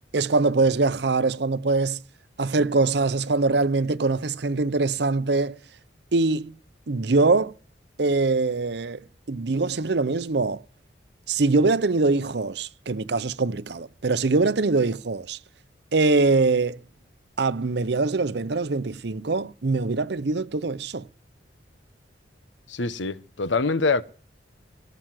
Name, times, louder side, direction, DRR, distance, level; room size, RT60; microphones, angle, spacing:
voice 1, 0.1-2.0 2.4-5.6 6.1-6.5 6.9-7.5 8.0-10.6 11.3-15.4 15.9-16.8 17.4-21.1, right 3 dB, 65° right, 0.7 m, -23 dB
voice 2, 22.7-24.0, left 3 dB, 80° left, 0.9 m, -24 dB
17.0 x 7.8 x 7.6 m
head